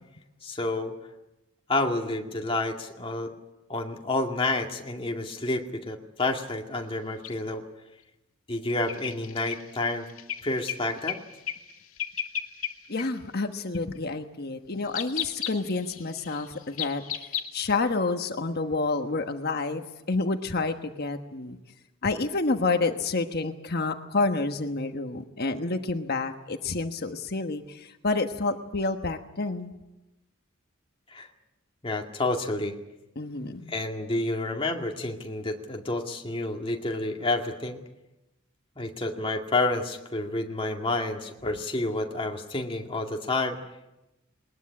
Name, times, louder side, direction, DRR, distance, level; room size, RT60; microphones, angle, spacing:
voice 1, 0.4-0.9 1.7-3.3 3.7-7.6 8.5-10.1 10.4-11.2 31.1-31.3 31.8-32.8 33.7-37.8 38.8-43.6, left 2 dB, 25° left, 2 dB, 2.2 m, -29 dB
sound 1, 7.2-7.3 8.7-11.2 11.5-11.7 12.0-12.7 13.0-13.1 13.7-14.0 14.9-17.7, left 9 dB, 80° left, 2.2 m, -34 dB
voice 2, 12.9-17.0 17.5-21.6 22.0-29.7 33.2-33.7, left 3 dB, 50° left, 6 dB, 1.3 m, -29 dB
21.0 x 20.5 x 8.6 m, 0.97 s
head